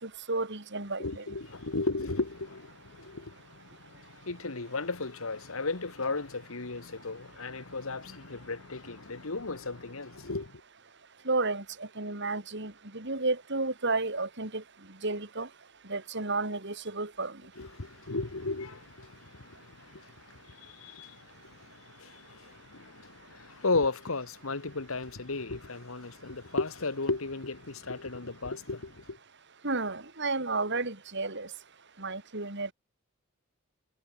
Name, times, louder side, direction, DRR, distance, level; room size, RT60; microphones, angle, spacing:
voice 1, 0.0-1.2 11.3-11.6 12.0-14.6 15.0-15.5 15.9-17.3 29.6-31.5 32.0-32.7, right 3 dB, 55° right, 4.2 m, -32 dB
voice 2, 1.0-10.5 17.6-29.2, left 3 dB, 75° left, 1.6 m, -35 dB
head